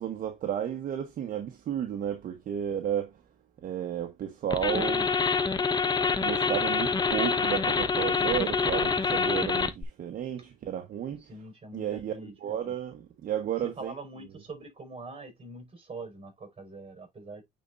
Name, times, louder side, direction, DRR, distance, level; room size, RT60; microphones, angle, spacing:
voice 1, 0.0-3.2 3.6-5.1 6.1-11.2 11.7-12.1 12.4-13.9, right 9 dB, 55° right, 1.2 m, -32 dB
sound 1, 4.5-9.8, left 5 dB, 25° left, 0.8 m, -26 dB
voice 2, 11.2-12.7 13.8-17.4, right 3 dB, 30° right, 5.0 m, -44 dB
9.2 x 4.3 x 2.5 m
cardioid pair, 110°, 17 cm